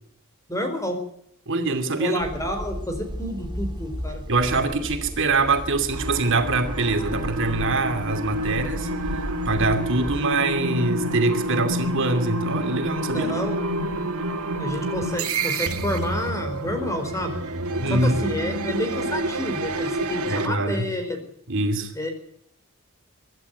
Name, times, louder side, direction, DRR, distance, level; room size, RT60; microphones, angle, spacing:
voice 1, 0.5-1.0 2.0-4.2 13.1-13.6 14.6-17.3 17.9-21.2 21.9-22.1, equal, 15° left, 4.7 m, -29 dB
voice 2, 1.5-2.2 4.3-13.3 17.8-18.2 20.2-20.9 21.5-21.9, right 3 dB, 60° right, 2.7 m, -24 dB
sound 1, 2.2-10.2, equal, 20° right, 2.2 m, -35 dB
sound 2, 5.9-20.5, right 1 dB, 80° right, 2.4 m, -29 dB
25.0 x 12.0 x 9.5 m
head